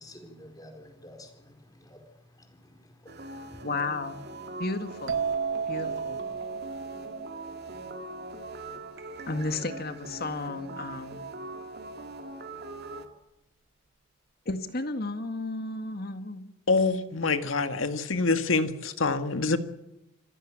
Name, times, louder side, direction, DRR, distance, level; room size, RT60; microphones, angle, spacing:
voice 1, 0.0-2.0 2.4-3.1 3.5-3.6, left 1 dB, 20° left, 5 dB, 4.6 m, -50 dB
sound 1, 3.1-13.1, right 2 dB, 55° right, 2.5 m, -41 dB
voice 2, 3.6-4.2 4.6-5.2 5.7-6.2 9.3-11.2 14.5-16.5, left 2 dB, 50° left, 9 dB, 1.9 m, -33 dB
sound 2, 5.1-8.7, right 6 dB, 90° right, 0.9 m, -34 dB
voice 3, 16.7-19.6, left 3 dB, 85° left, 9 dB, 1.7 m, -26 dB
26.0 x 15.5 x 7.4 m, 0.91 s
head